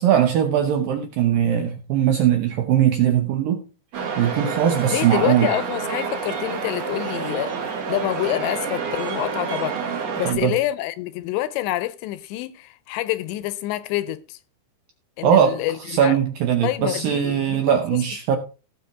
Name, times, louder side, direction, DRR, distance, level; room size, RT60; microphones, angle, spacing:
voice 1, 0.0-3.6 4.2-5.5 10.3-10.6 15.2-18.4, right 9 dB, 80° right, 2.1 m, -20 dB
sound 1, 3.9-10.3, right 5 dB, 50° right, 2.1 m, -28 dB
voice 2, 4.9-7.5 7.9-14.4 15.2-16.2 16.6-17.6, left 14 dB, 80° left, 2.7 m, -27 dB
17.5 x 6.2 x 3.6 m
omnidirectional pair, 5.2 m